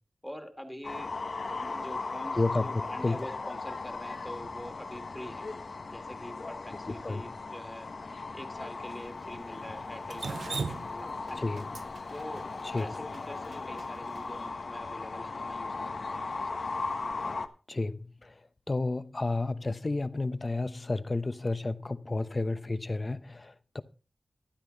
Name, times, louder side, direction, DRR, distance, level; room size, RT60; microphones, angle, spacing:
voice 1, 0.2-1.1 1.6-5.5 5.9-7.9 8.3-11.5 12.1-16.2, equal, ahead, 1.8 m, -45 dB
sound 1, 0.8-17.5, left 3 dB, 65° left, 1.1 m, -37 dB
voice 2, 2.3-3.2 6.9-7.2 11.4-11.6 12.6-12.9 17.7-18.4 18.7-23.8, left 2 dB, 40° left, 0.9 m, -31 dB
Drip, 10.1-14.2, right 4 dB, 80° right, 0.5 m, -38 dB
13.0 x 10.5 x 4.0 m
wide cardioid pair, 60°, 0 cm